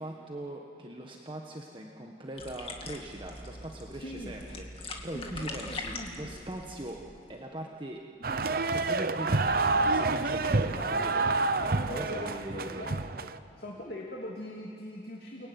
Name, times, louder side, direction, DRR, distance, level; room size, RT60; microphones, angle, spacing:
voice 1, 0.0-12.9, right 1 dB, 30° right, 0 dB, 1.5 m, -41 dB
sound 1, 2.4-7.4, left 2 dB, 30° left, 2.3 m, -42 dB
voice 2, 4.0-4.4 5.1-6.4 10.6-11.2 11.9-13.3 13.6-15.5, left 1 dB, 55° left, -2 dB, 3.0 m, -42 dB
sound 2, 8.2-13.4, right 3 dB, 55° right, 0.8 m, -28 dB
29.5 x 20.0 x 9.6 m, 2.6 s
head